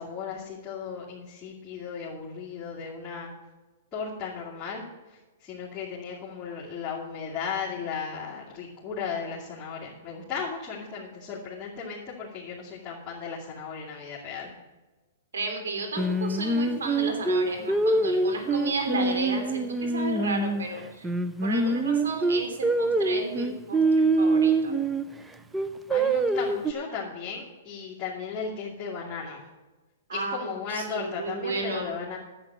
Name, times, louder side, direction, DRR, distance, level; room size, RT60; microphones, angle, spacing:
voice 1, 0.0-3.3 3.9-14.5 25.9-29.5 30.1-32.2, left 6 dB, 20° left, -8 dB, 2.6 m, -36 dB
voice 2, 15.3-21.1 21.4-23.8 24.2-24.7 30.1-31.9, right 3 dB, 90° right, 4 dB, 3.2 m, -33 dB
Singing, 16.0-20.6 21.0-25.0 25.5-26.7, right 2 dB, 5° right, 0.6 m, -24 dB
10.5 x 8.0 x 7.5 m, 1.2 s
hypercardioid pair, 140°, 0 cm